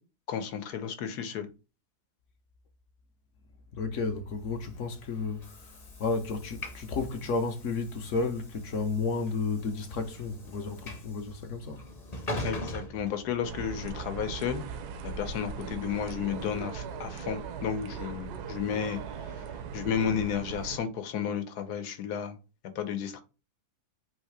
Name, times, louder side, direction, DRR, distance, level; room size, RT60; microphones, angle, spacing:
voice 1, 0.3-1.5 12.4-14.6 15.0-19.0 19.7-22.4 22.7-23.2, left 8 dB, 85° left, 1.3 m, -32 dB
voice 2, 3.7-11.8, left 4 dB, 60° left, 0.9 m, -32 dB
Train / Sliding door, 4.6-13.8, left 1 dB, 35° left, 0.7 m, -42 dB
sound 1, 13.4-20.8, right 6 dB, 85° right, 1.2 m, -40 dB
sound 2, 15.4-19.9, right 7 dB, 70° right, 0.6 m, -45 dB
4.0 x 2.7 x 4.6 m
omnidirectional pair, 1.7 m